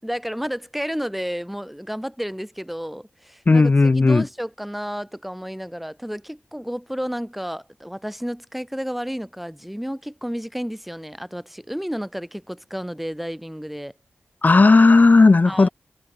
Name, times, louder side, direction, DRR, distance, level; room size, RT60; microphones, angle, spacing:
voice 1, 0.0-13.9 15.5-15.7, equal, 5° right, 5.2 m, -31 dB
voice 2, 3.5-4.2 14.4-15.7, left 3 dB, 40° left, 0.8 m, -14 dB
wide cardioid pair, 70°, 4 cm